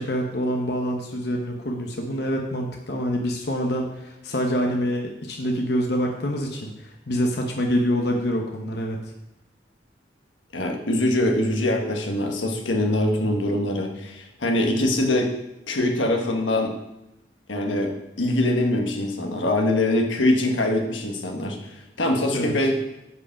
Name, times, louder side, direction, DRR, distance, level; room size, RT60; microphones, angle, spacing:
voice 1, 0.0-9.0 22.3-22.5, equal, 60° left, 1 dB, 1.0 m, -26 dB
voice 2, 10.5-15.3 15.7-16.7 17.5-22.8, left 1 dB, 90° left, 3 dB, 1.4 m, -23 dB
9.8 x 5.0 x 5.9 m, 0.89 s
head